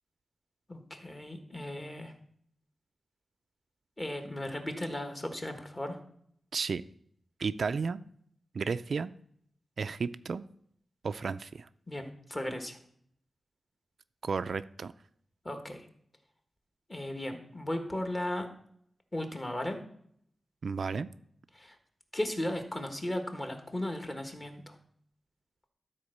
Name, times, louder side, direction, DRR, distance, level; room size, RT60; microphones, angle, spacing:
voice 1, 0.7-2.1 4.0-6.0 11.9-12.8 15.4-15.9 16.9-18.5 19.1-19.8 21.5-21.8 22.1-24.7, left 1 dB, 25° left, 6 dB, 1.3 m, -36 dB
voice 2, 7.4-8.0 8.5-9.1 9.8-10.4 11.0-11.7 14.2-14.9 20.6-21.1, right 5 dB, 65° right, 12 dB, 0.3 m, -33 dB
12.5 x 4.4 x 6.5 m, 0.67 s
wide cardioid pair, 120°, 0 cm